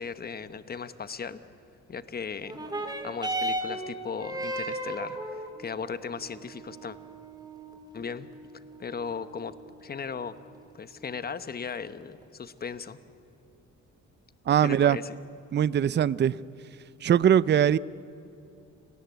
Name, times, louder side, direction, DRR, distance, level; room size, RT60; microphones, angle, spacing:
voice 1, 0.0-1.4 1.9-2.6 2.9-5.2 5.6-7.0 7.9-8.3 8.8-9.5 9.8-10.4 10.7-13.0 14.6-15.2, left 6 dB, 30° left, 1.1 m, -37 dB
sound 1, 2.4-11.4 12.2-12.3, right 1 dB, 15° right, 3.7 m, -37 dB
voice 2, 14.5-15.0 15.5-16.4 17.0-17.8, right 9 dB, 35° right, 0.5 m, -21 dB
29.5 x 18.5 x 8.1 m
cardioid pair, 90°, 30 cm